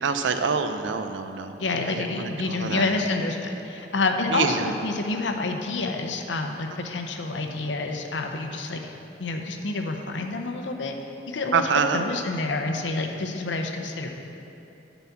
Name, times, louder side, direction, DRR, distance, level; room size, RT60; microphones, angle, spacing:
voice 1, 0.0-1.6 2.0-2.9 4.3-4.6 11.5-12.0, right 5 dB, 90° right, 8 dB, 0.5 m, -26 dB
voice 2, 1.6-8.8 9.2-11.7 11.9-14.1, left 3 dB, 85° left, 4 dB, 0.7 m, -28 dB
9.3 x 4.1 x 7.1 m, 3.0 s
head